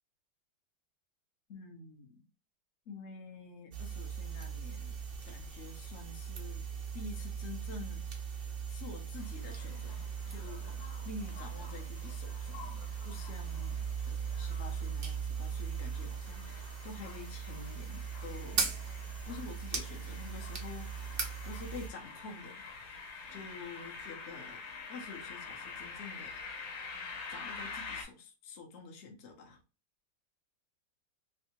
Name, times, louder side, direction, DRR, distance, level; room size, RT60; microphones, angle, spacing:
voice 1, 1.5-2.3 2.9-5.0 5.2-6.7 6.9-18.7 19.3-22.6 23.3-24.6 24.9-26.8 27.3-29.6, left 3 dB, 50° left, 0.9 m, -48 dB
sound 1, 3.7-21.9, right 6 dB, 60° right, 0.5 m, -39 dB
sound 2, 9.2-28.0, left 4 dB, 90° left, 1.6 m, -48 dB
3.4 x 2.7 x 2.9 m
omnidirectional pair, 2.0 m